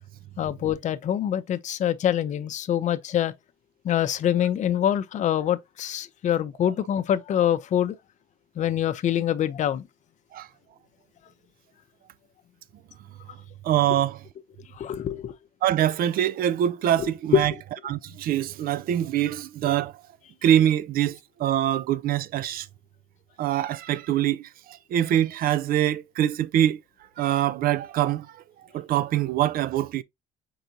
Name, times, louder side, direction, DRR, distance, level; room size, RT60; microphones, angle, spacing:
voice 1, 0.4-3.3 3.8-7.9 8.6-9.9 14.8-15.4 17.0-17.4, left 10 dB, 45° left, 0.5 m, -25 dB
voice 2, 13.6-14.2 15.6-17.5 17.9-19.9 20.4-22.7 23.4-26.8 27.2-28.3 28.7-30.0, right 11 dB, 60° right, 0.4 m, -24 dB
4.6 x 3.9 x 2.7 m
cardioid pair, 110°, 17 cm